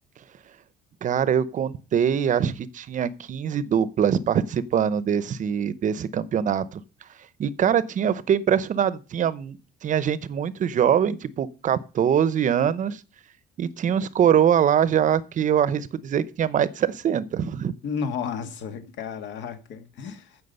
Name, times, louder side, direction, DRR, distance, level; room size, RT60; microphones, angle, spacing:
voice 1, 1.0-6.8 7.4-13.0 13.6-17.7, right 8 dB, 40° right, 0.8 m, -23 dB
voice 2, 17.8-20.4, left 6 dB, 65° left, 2.0 m, -32 dB
15.0 x 6.0 x 5.5 m
cardioid pair, 140°, 20 cm